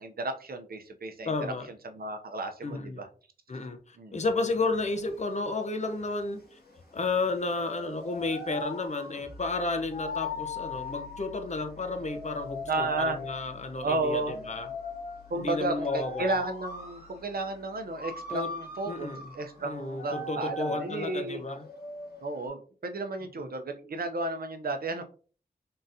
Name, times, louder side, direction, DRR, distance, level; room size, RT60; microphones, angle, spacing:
voice 1, 0.0-1.3 1.8-3.1 4.0-4.2 12.7-13.2 13.8-14.3 15.3-19.1 19.3-21.4 22.2-25.0, right 2 dB, 65° right, 6 dB, 0.7 m, -33 dB
voice 2, 1.2-1.7 2.6-3.0 3.5-6.6 6.9-14.7 15.3-16.3 18.3-18.5 18.9-19.2 19.6-21.6, left 3 dB, 45° left, 5 dB, 0.7 m, -32 dB
sound 1, 4.5-22.5, left 2 dB, 75° left, 1.8 m, -41 dB
sound 2, 9.2-20.5, left 9 dB, 50° right, 1.8 m, -54 dB
3.8 x 3.8 x 2.7 m, 0.39 s
wide cardioid pair, 90°, 16 cm